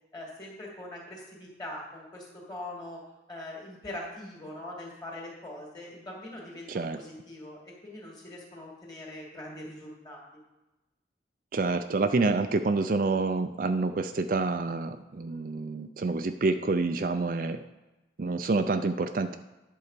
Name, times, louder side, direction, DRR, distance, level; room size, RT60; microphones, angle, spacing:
voice 1, 0.1-3.0 3.3-10.2, left 1 dB, 20° left, -2 dB, 2.6 m, -42 dB
voice 2, 11.5-17.6 18.2-19.4, right 3 dB, 45° right, 8 dB, 0.4 m, -27 dB
11.0 x 4.6 x 6.7 m, 1.0 s
head